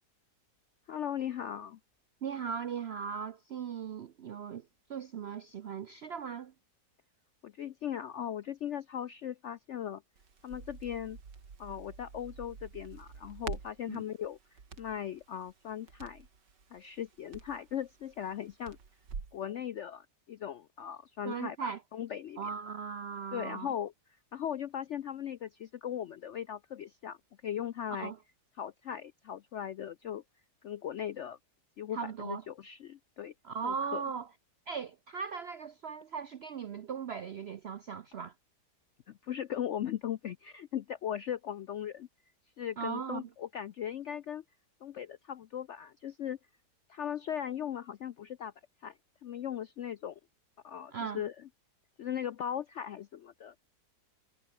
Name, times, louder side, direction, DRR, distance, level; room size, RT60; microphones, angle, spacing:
voice 1, 0.9-1.8 7.4-10.0 10.4-11.2 11.6-16.3 16.7-18.8 19.3-22.4 23.3-23.9 24.3-27.2 27.4-28.1 28.6-30.2 30.6-31.4 31.8-33.3 33.6-34.0 39.1-42.1 42.6-44.4 44.8-46.4 46.9-48.5 48.8-50.2 50.6-51.3 52.0-53.6, left 9 dB, 70° left, 0.6 m, -38 dB
voice 2, 2.2-6.5 13.9-14.0 21.2-21.8 22.4-23.7 28.0-28.2 31.9-32.4 33.4-34.3 34.7-38.3 42.8-43.3 50.9-51.2, right 6 dB, 65° right, 0.6 m, -38 dB
Crackle, 10.2-19.4, right 5 dB, 85° right, 3.1 m, -48 dB
omnidirectional pair, 1.8 m